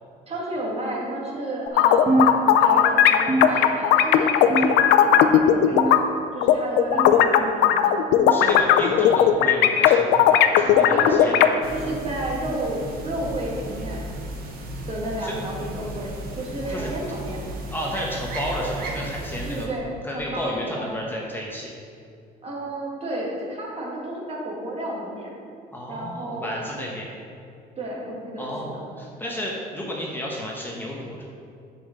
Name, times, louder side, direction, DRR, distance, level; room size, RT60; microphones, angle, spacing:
voice 1, 0.3-6.0 6.3-8.0 10.7-14.0 14.9-17.4 19.4-21.0 22.4-25.3 25.9-26.6 27.8-28.8, right 1 dB, 35° right, -3 dB, 2.0 m, -32 dB
sound 1, 1.7-6.0 6.4-11.5, left 10 dB, 90° left, 0.5 m, -16 dB
sound 2, 2.1-2.9 3.3-4.1 4.5-5.1 5.7-6.3 6.9-7.3 8.2-8.4 9.4-9.6 10.6-10.8 11.8-12.0 13.0-13.2 14.3-14.4 15.5-15.6 16.7-16.8, right 2 dB, 20° right, 1.3 m, -27 dB
voice 2, 8.3-11.3 15.2-15.4 16.7-16.9 17.7-19.7 20.0-21.7 25.7-27.1 28.4-31.2, equal, 10° left, -3 dB, 1.2 m, -32 dB
sound 3, 11.6-19.7, right 1 dB, 60° right, 1.3 m, -35 dB
6.5 x 6.3 x 5.2 m, 2.4 s
cardioid pair, 110°, 17 cm